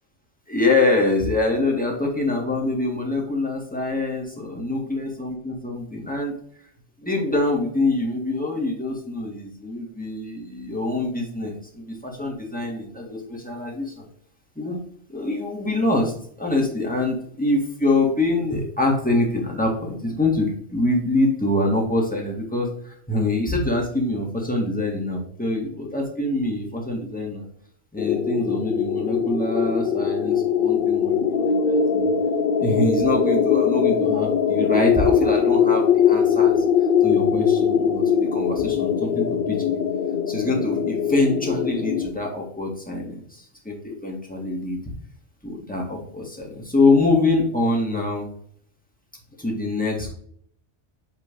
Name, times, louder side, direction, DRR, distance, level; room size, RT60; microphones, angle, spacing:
voice 1, 0.5-6.3 7.0-14.1 14.6-14.8 15.1-27.5 27.9-32.1 32.6-36.6 37.0-39.8 40.3-44.8 45.4-48.3 49.4-50.1, left 2 dB, 5° left, -1 dB, 1.8 m, -24 dB
sound 1, 28.0-42.1, left 7 dB, 60° left, 0.7 m, -21 dB
8.6 x 3.8 x 3.8 m, 0.63 s
omnidirectional pair, 1.2 m